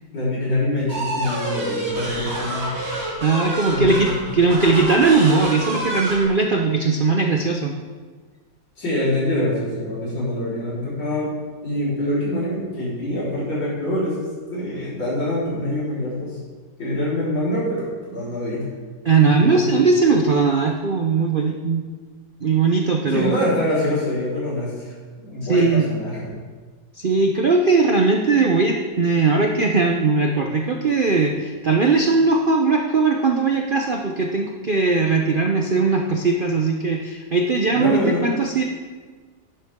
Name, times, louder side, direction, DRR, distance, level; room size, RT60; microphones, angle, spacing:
voice 1, 0.1-2.7 3.7-4.2 8.8-11.3 11.6-14.2 14.5-16.4 16.8-18.7 19.2-19.7 23.1-24.9 25.2-26.3 37.7-38.2, left 1 dB, 85° left, -8 dB, 5.0 m, -25 dB
sound 1, 0.9-6.2, right 1 dB, 35° right, 3.4 m, -28 dB
voice 2, 3.2-7.7 19.0-21.9 22.4-23.3 25.5-25.9 27.0-38.6, right 4 dB, 60° right, 2 dB, 0.5 m, -19 dB
11.5 x 10.5 x 3.7 m, 1.4 s
omnidirectional pair, 2.0 m